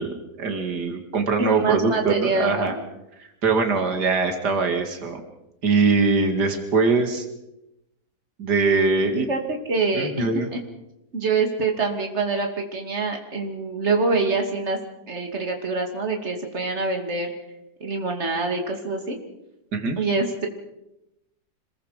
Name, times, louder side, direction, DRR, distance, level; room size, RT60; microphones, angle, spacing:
voice 1, 0.0-2.7 3.2-5.2 5.6-7.2 8.4-9.3 9.9-10.5 19.7-20.0, right 4 dB, 90° right, 4 dB, 2.8 m, -22 dB
voice 2, 1.4-2.8 9.1-10.6 11.1-14.8 15.1-17.3 17.8-19.2 20.0-20.5, right 3 dB, 45° right, 3 dB, 3.0 m, -25 dB
26.5 x 21.5 x 5.2 m, 0.90 s
omnidirectional pair, 1.7 m